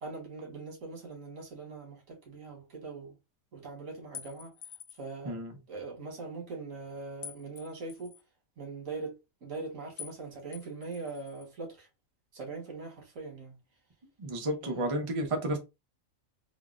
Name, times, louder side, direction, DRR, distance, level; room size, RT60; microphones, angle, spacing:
voice 1, 0.0-3.2 3.5-4.5 4.9-8.2 8.6-11.9 12.3-13.6 14.6-15.1, right 3 dB, 80° right, 1.5 m, -42 dB
sound 1, 4.1-5.1 7.2-8.2 10.0-10.2 10.5-11.5, left 8 dB, 90° left, 0.4 m, -47 dB
voice 2, 14.2-15.6, right 1 dB, 35° right, 0.6 m, -31 dB
3.6 x 2.0 x 2.4 m
omnidirectional pair, 1.4 m